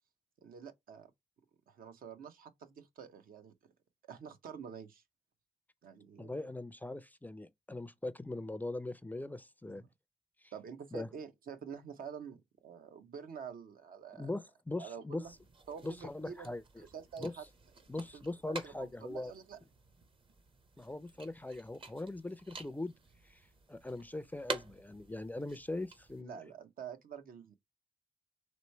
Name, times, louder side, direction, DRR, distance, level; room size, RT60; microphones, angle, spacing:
voice 1, 0.4-1.1 1.7-3.5 4.1-5.0 5.8-6.3 9.7-9.8 10.5-14.3 14.8-15.3 15.7-16.5 16.8-17.4 18.1-19.6 26.2-27.5, right 7 dB, 75° right, 0.7 m, -47 dB
voice 2, 6.2-9.8 10.4-10.5 10.9-11.1 14.1-15.2 15.8-16.9 17.2-17.3 17.9-19.3 20.8-22.9 23.2-23.4 23.7-26.4, left 2 dB, 10° left, 0.3 m, -41 dB
sound 1, 15.2-26.2, right 4 dB, 35° right, 0.6 m, -49 dB
3.1 x 3.0 x 4.3 m
cardioid pair, 85°, 15 cm